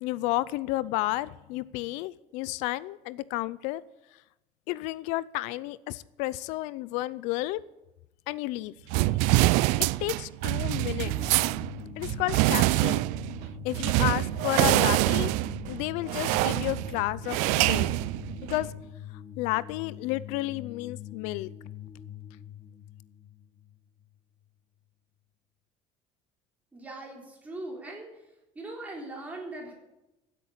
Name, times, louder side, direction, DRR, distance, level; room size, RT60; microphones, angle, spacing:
voice 1, 0.0-3.8 4.7-7.6 8.3-8.7 10.0-11.1 12.0-13.0 13.6-15.3 15.7-17.9 18.5-18.7 19.4-21.5, left 17 dB, 75° left, 19 dB, 0.5 m, -31 dB
sound 1, 8.9-18.7, right 19 dB, 75° right, 0.4 m, -25 dB
sound 2, 11.0-24.2, left 10 dB, 30° left, 1.1 m, -43 dB
voice 2, 26.7-28.3 28.5-29.7, right 2 dB, 10° right, -1 dB, 3.8 m, -40 dB
15.5 x 8.4 x 8.7 m, 0.97 s
cardioid pair, 160°, 12 cm